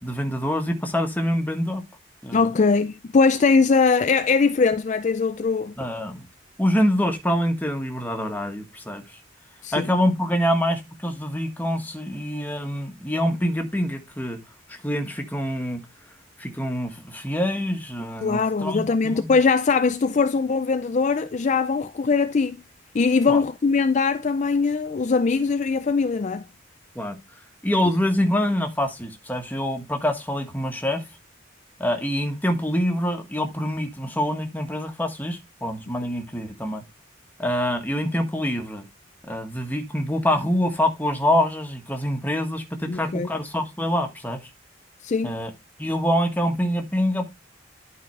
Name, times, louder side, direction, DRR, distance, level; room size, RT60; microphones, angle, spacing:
voice 1, 0.0-1.8 2.2-2.5 5.8-6.3 6.6-9.0 9.7-14.4 14.7-15.8 16.4-19.3 23.3-23.4 26.9-27.2 27.6-31.0 31.8-36.8 37.4-38.8 39.2-44.4 45.2-45.5 45.8-47.3, equal, 10° left, 1.4 m, -25 dB
voice 2, 2.3-5.7 9.6-9.9 18.2-22.6 22.9-26.5 42.9-43.3 45.0-45.4, left 4 dB, 40° left, 0.4 m, -21 dB
11.5 x 5.0 x 3.2 m
head